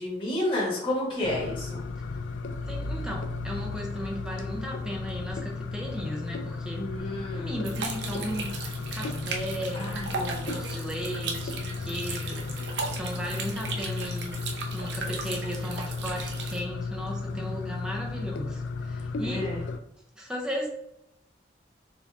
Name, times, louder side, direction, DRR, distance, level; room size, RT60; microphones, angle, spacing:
voice 1, 0.0-1.8 6.8-7.6 9.7-10.1 17.3-17.6 19.2-19.6, left 1 dB, 30° left, -6 dB, 1.5 m, -31 dB
sound 1, 1.2-19.8, left 3 dB, 75° left, 0.4 m, -34 dB
voice 2, 2.7-6.9 7.3-8.6 8.9-9.8 10.1-14.4 14.7-19.6 20.2-20.7, equal, 5° right, -1 dB, 0.5 m, -36 dB
sound 2, 7.6-16.6, right 4 dB, 70° right, 0.7 m, -37 dB
4.2 x 2.8 x 3.4 m, 0.81 s
head